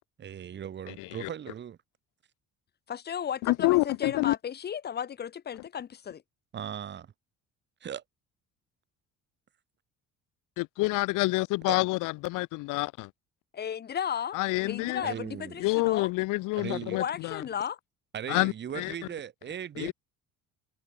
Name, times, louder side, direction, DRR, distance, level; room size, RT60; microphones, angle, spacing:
voice 1, 0.2-1.8 6.5-7.1 7.8-8.0 11.7-11.8 15.0-15.6 16.6-17.0 18.1-19.9, right 9 dB, 35° right, 3.5 m, -38 dB
voice 2, 2.9-6.2 13.5-16.1 16.9-17.8, left 8 dB, 30° left, 1.8 m, -34 dB
voice 3, 3.5-4.3 10.6-13.1 14.3-15.0 15.6-17.0 18.3-18.9 19.8-19.9, left 22 dB, 90° left, 1.8 m, -27 dB
cardioid pair, 160°, 31 cm